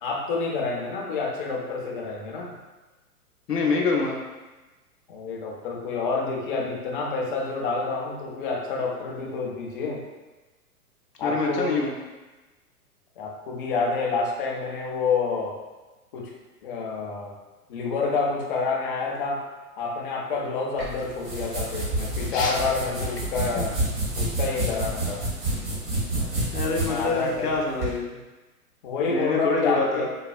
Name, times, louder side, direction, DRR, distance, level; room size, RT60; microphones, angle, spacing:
voice 1, 0.0-2.5 5.1-10.0 11.2-11.8 13.2-15.6 16.1-16.3 16.6-17.4 17.7-19.5 19.8-23.8 24.2-25.3 26.9-27.5 28.8-30.1, left 4 dB, 35° left, -1 dB, 0.6 m, -28 dB
voice 2, 3.5-4.2 11.2-11.9 22.3-22.5 23.6-23.7 26.5-28.2 29.1-30.1, left 4 dB, 80° left, -2 dB, 0.7 m, -26 dB
sound 1, 20.8-27.9, right 1 dB, 40° right, 1.2 m, -29 dB
4.1 x 2.4 x 2.3 m, 1.2 s
figure-of-eight pair, 110°, 46 cm